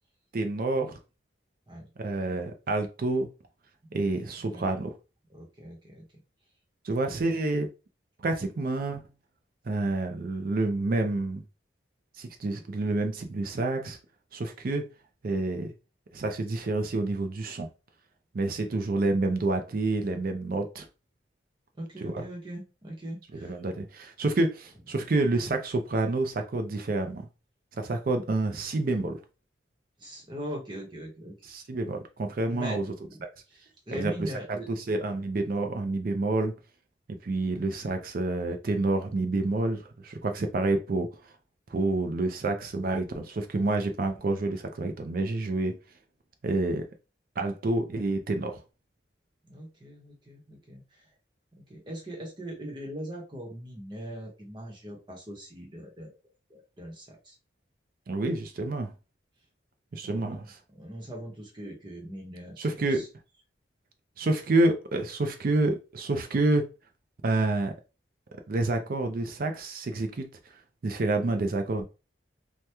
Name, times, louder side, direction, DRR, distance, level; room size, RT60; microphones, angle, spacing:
voice 1, 0.3-1.0 2.0-3.3 3.9-4.9 6.8-7.7 8.2-9.0 9.7-11.4 12.2-14.0 14.3-14.8 15.2-15.7 16.1-17.7 18.3-20.9 22.0-22.2 23.4-27.3 27.8-29.2 31.5-32.8 33.9-36.5 37.2-41.1 41.7-45.8 46.4-46.8 47.4-48.6 58.1-58.9 59.9-60.4 62.6-63.0 64.2-66.7 67.2-67.7 68.5-70.3 70.8-71.9, right 2 dB, 50° right, 0.4 m, -28 dB
voice 2, 3.8-4.7 5.3-6.2 7.0-7.4 17.4-17.5 21.7-23.6 24.9-25.0 30.0-31.3 32.5-33.2 33.5-34.7 49.4-51.1 51.6-56.1 56.5-57.4 60.0-60.4 60.7-63.1, equal, 25° right, 0.9 m, -41 dB
2.9 x 2.1 x 3.4 m
head